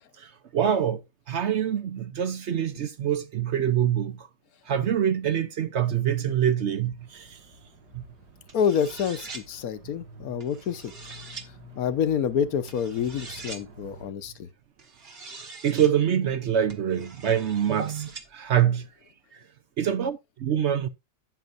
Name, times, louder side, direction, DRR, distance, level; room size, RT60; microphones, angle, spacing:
voice 1, 0.2-4.3 4.7-7.4 7.9-8.0 15.6-18.9 19.3-19.4 19.8-20.9, right 9 dB, 60° right, 0.8 m, -25 dB
sound 1, 7.0-14.1, right 1 dB, 85° right, 2.4 m, -49 dB
voice 2, 8.5-10.9 11.8-14.5, left 8 dB, 65° left, 1.3 m, -27 dB
sound 2, 8.5-9.5 10.4-11.5 12.7-13.6 14.8-15.9 16.7-18.3, right 4 dB, 40° right, 1.5 m, -43 dB
12.0 x 9.3 x 2.6 m
omnidirectional pair, 1.7 m